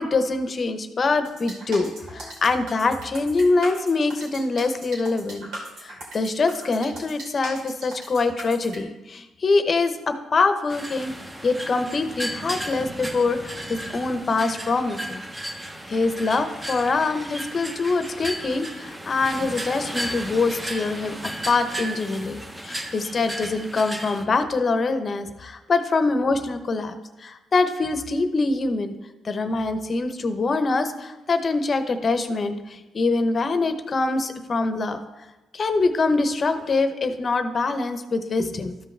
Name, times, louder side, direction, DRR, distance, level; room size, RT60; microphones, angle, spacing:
voice 1, 0.0-5.5 5.8-11.1 11.4-15.2 15.9-21.1 21.5-28.9 29.2-35.0 35.5-38.8, left 3 dB, 40° left, 8 dB, 0.8 m, -24 dB
sound 1, 1.2-8.8, right 1 dB, 75° right, 2.6 m, -39 dB
sound 2, 10.7-24.2, right 1 dB, 15° right, 1.1 m, -34 dB
13.0 x 5.3 x 3.4 m, 1.1 s
cardioid pair, 90°, 0 cm